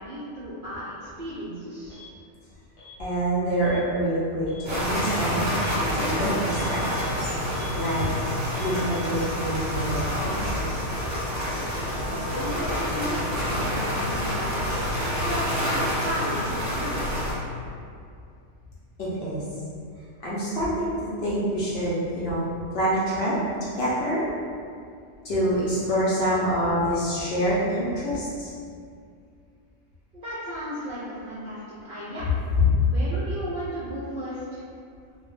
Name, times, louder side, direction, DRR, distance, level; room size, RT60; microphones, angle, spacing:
voice 1, 0.0-2.0 11.9-14.5 15.1-17.2 30.2-32.3 32.8-34.6, equal, 60° right, -10 dB, 0.5 m, -34 dB
Alarm, 1.9-2.1 2.8-3.0 3.6-3.8 4.3-4.7 5.5-5.8 6.5-7.1 7.5-8.1 8.5-9.0 9.6-11.2 12.2-13.4 13.7-14.3 14.5-16.2, left 2 dB, 85° left, 1.2 m, -43 dB
voice 2, 3.0-5.5 5.9-7.3 7.7-8.1 8.5-10.6 19.0-19.4 20.2-22.5 22.7-23.4 23.7-24.2 25.2-28.5, right 1 dB, 65° left, -8 dB, 0.7 m, -26 dB
sound 1, 4.6-17.3, equal, 15° right, 0.7 m, -28 dB
2.1 x 2.1 x 3.1 m, 2.3 s
omnidirectional pair, 1.4 m